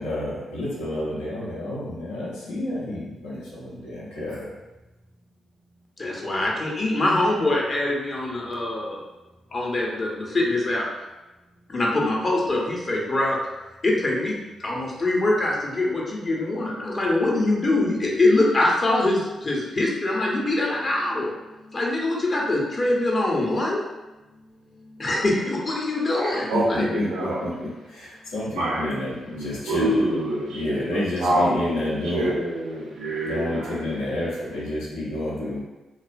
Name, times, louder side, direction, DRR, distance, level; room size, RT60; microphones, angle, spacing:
voice 1, 0.0-4.5 26.5-30.0 30.5-32.4 33.2-35.6, left 1 dB, 90° left, -8 dB, 0.7 m, -29 dB
voice 2, 6.0-9.0 9.5-10.9 11.7-13.4 13.8-21.3 21.7-23.8 25.0-26.9, left 2 dB, 45° left, -3 dB, 0.7 m, -23 dB
voice 3, 26.1-27.4 28.5-29.0 29.3-33.9, right 1 dB, 75° right, -4 dB, 0.5 m, -26 dB
2.3 x 2.2 x 2.4 m, 1.1 s
hypercardioid pair, 40°, 0 cm